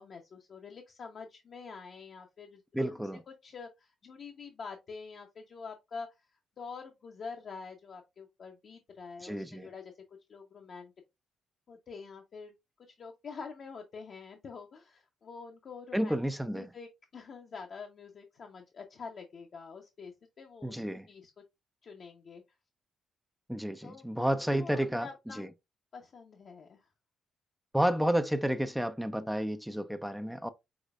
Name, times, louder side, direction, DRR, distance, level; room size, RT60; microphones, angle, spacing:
voice 1, 0.0-9.9 10.3-10.9 11.7-12.5 13.0-16.2 16.5-20.1 20.4-21.3 21.8-22.4 23.8-25.4 25.9-26.9, left 5 dB, 55° left, 0.8 m, -46 dB
voice 2, 2.7-3.2 9.2-9.7 15.9-16.6 20.6-21.1 23.5-25.1 25.4-25.5 27.7-30.5, equal, 5° right, 0.5 m, -31 dB
5.0 x 3.9 x 2.4 m
hypercardioid pair, 45°, 0 cm